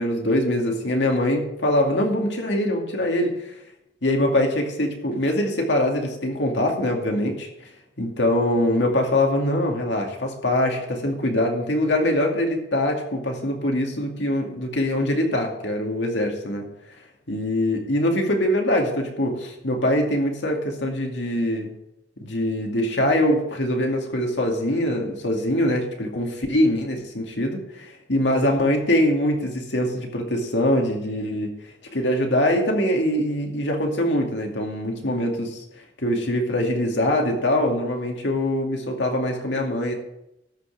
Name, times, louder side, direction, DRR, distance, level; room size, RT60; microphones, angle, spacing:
voice 1, 0.0-3.5 4.0-7.7 8.0-16.6 17.3-21.7 22.2-31.5 31.9-35.6 36.0-39.9, left 1 dB, 75° left, 1 dB, 2.4 m, -23 dB
13.0 x 5.7 x 6.9 m, 0.85 s
head